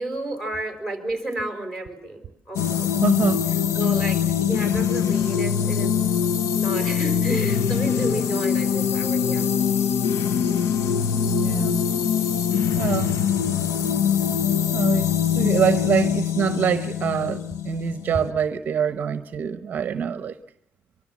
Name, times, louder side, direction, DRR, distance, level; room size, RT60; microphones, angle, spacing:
voice 1, 0.0-2.9 3.5-5.9 6.5-9.5, right 2 dB, 10° left, 4.8 m, -32 dB
sound 1, 2.5-18.3, left 8 dB, 90° left, 0.9 m, -23 dB
voice 2, 3.0-3.4 11.2-11.8 12.8-13.1 14.7-20.3, right 8 dB, 40° right, 0.9 m, -25 dB
24.5 x 23.5 x 7.3 m
cardioid pair, 160°, 5 cm